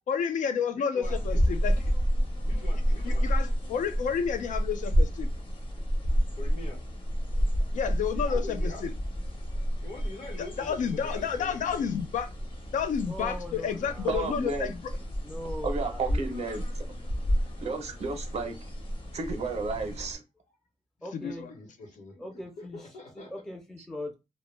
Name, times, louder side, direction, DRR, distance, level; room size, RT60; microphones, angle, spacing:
voice 1, 0.1-1.7 3.0-5.3 7.7-8.9 10.6-12.3 12.7-14.9 21.1-21.5, left 7 dB, 90° left, 0.4 m, -30 dB
voice 2, 0.7-1.4 2.4-3.3 6.4-6.8 8.1-9.0 9.8-11.9 17.3-17.6 19.0-19.1 21.4-23.3, left 2 dB, 70° left, 0.9 m, -44 dB
sound 1, 1.0-20.1, equal, 40° left, 0.6 m, -30 dB
voice 3, 13.0-14.2 15.2-16.4 21.0-21.5 22.2-22.8 23.2-24.1, left 1 dB, 5° left, 0.3 m, -40 dB
voice 4, 14.1-14.7 15.6-16.8 17.6-18.6 19.1-20.2, right 4 dB, 55° right, 0.5 m, -32 dB
2.1 x 2.0 x 3.1 m
wide cardioid pair, 155°, 13 cm